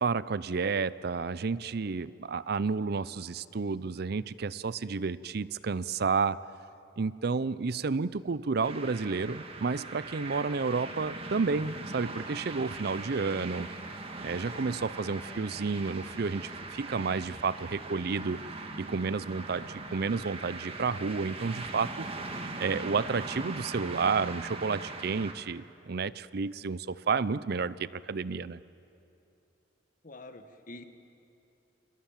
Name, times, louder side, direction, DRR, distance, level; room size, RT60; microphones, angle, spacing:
voice 1, 0.0-6.4 7.0-13.7 14.2-18.4 18.8-22.1 22.6-28.6, right 4 dB, 55° right, 17 dB, 0.5 m, -31 dB
sound 1, 8.6-25.3, right 2 dB, 30° right, 2.0 m, -41 dB
voice 2, 30.0-30.8, left 2 dB, 45° left, 8 dB, 1.7 m, -46 dB
29.0 x 26.0 x 7.5 m, 2.8 s
head